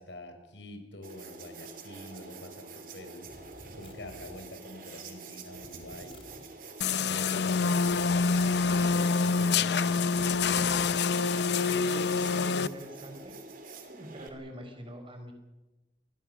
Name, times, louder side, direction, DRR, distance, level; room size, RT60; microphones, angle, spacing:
voice 1, 0.0-6.2 7.1-8.2 8.9-10.0, left 1 dB, 90° left, 7 dB, 4.5 m, -46 dB
sound 1, 1.0-14.3, right 3 dB, 50° right, 3.1 m, -47 dB
sound 2, 3.3-4.4 5.5-6.5 7.8-9.0 10.1-11.0, left 1 dB, 30° left, 3.2 m, -51 dB
sound 3, 6.8-12.7, left 4 dB, 65° left, 0.7 m, -26 dB
voice 2, 11.7-13.3 13.9-15.3, equal, 30° right, 6 dB, 4.6 m, -44 dB
28.0 x 20.0 x 6.6 m, 1.1 s
head